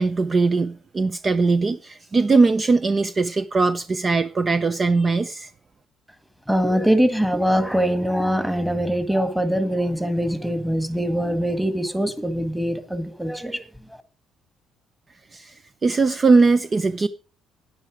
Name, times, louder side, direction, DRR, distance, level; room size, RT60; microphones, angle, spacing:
voice 1, 0.0-5.5 15.3-17.1, right 3 dB, 35° right, 0.7 m, -20 dB
voice 2, 6.5-13.6, equal, 5° right, 1.8 m, -22 dB
10.0 x 9.8 x 4.9 m
supercardioid pair, 70°, 0 cm